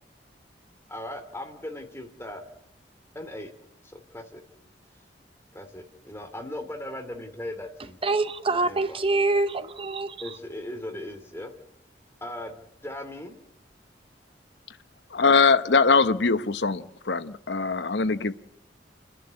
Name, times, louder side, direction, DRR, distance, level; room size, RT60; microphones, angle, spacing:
voice 1, 0.9-2.4 3.1-3.5 3.8-4.4 5.5-8.0 8.5-9.0 10.2-11.5 12.2-12.6 12.8-13.4, left 1 dB, 15° left, 2.6 m, -38 dB
voice 2, 8.0-10.4, right 3 dB, 30° right, 0.9 m, -25 dB
voice 3, 15.1-18.4, left 4 dB, 75° left, 0.9 m, -22 dB
30.0 x 11.0 x 9.7 m
head